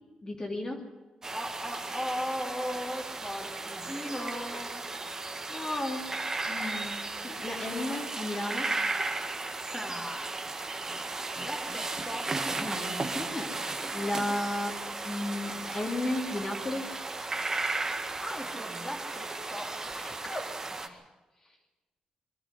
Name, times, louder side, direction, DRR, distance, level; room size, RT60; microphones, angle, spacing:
voice 1, 0.2-0.8 4.0-4.6 5.5-8.7 12.4-16.9 20.0-21.0, left 1 dB, 30° left, 1 dB, 2.9 m, -35 dB
sound 1, 1.2-20.9, right 3 dB, 25° right, 1.7 m, -35 dB
voice 2, 1.3-4.9 9.6-10.3 11.3-12.3 18.2-19.7, equal, 5° left, 0 dB, 2.9 m, -37 dB
22.5 x 13.0 x 9.9 m, 1.2 s
cardioid pair, 115°, 2 cm